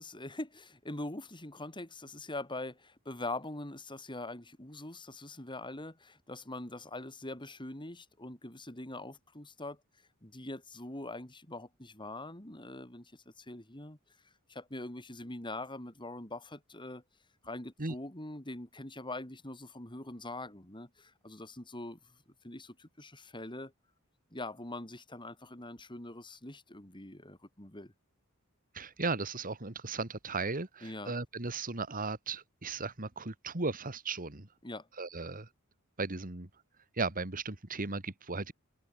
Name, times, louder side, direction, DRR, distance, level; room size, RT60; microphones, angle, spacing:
voice 1, 0.0-9.8 10.2-14.0 14.5-17.0 17.4-22.0 22.4-23.7 24.3-27.9 30.8-31.1 34.6-34.9, left 2 dB, 20° left, 4.4 m, -43 dB
voice 2, 28.7-34.5 35.0-35.5 36.0-36.5 37.0-38.5, right 3 dB, 40° right, 2.2 m, -36 dB
head